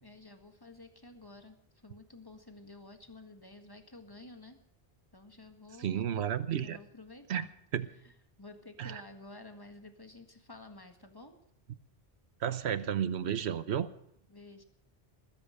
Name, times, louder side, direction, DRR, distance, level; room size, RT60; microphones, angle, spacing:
voice 1, 0.0-4.6 5.1-6.1 6.6-7.5 8.0-11.4 14.3-14.6, left 2 dB, 20° left, 6 dB, 1.7 m, -52 dB
voice 2, 5.8-6.8 7.3-7.4 7.7-7.9 8.8-9.0 12.4-13.9, right 9 dB, 85° right, 13 dB, 1.1 m, -32 dB
20.5 x 10.0 x 6.6 m, 0.73 s
omnidirectional pair, 1.1 m